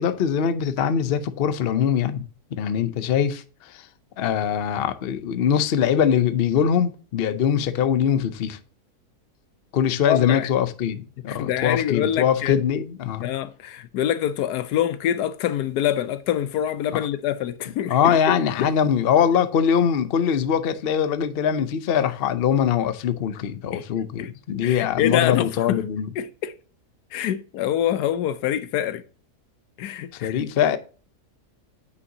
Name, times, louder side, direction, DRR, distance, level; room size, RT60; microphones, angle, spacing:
voice 1, 0.0-2.2 2.5-3.9 4.2-8.6 9.7-13.3 17.9-26.1 30.1-30.8, left 8 dB, 60° left, 0.6 m, -22 dB
voice 2, 10.1-10.5 11.3-12.6 13.2-18.7 23.7-23.8 24.2-24.3 24.6-25.8 26.2-26.5 27.1-29.0 29.8-30.3, left 10 dB, 80° left, 1.2 m, -25 dB
9.5 x 5.4 x 2.7 m
omnidirectional pair, 1.7 m